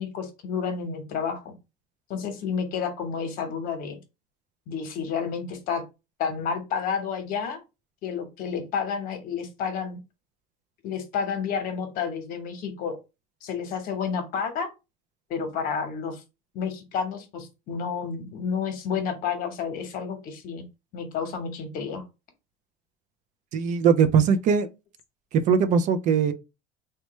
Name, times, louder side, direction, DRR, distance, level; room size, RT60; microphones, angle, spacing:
voice 1, 0.0-1.5 2.1-4.0 4.7-5.8 6.2-7.6 8.0-10.0 10.8-13.0 13.4-14.7 15.3-16.2 16.5-20.6 20.9-22.0, left 6 dB, 55° left, 0.9 m, -30 dB
voice 2, 23.5-24.7 25.3-26.3, right 6 dB, 45° right, 0.4 m, -20 dB
3.1 x 2.2 x 3.0 m
cardioid pair, 140°, 17 cm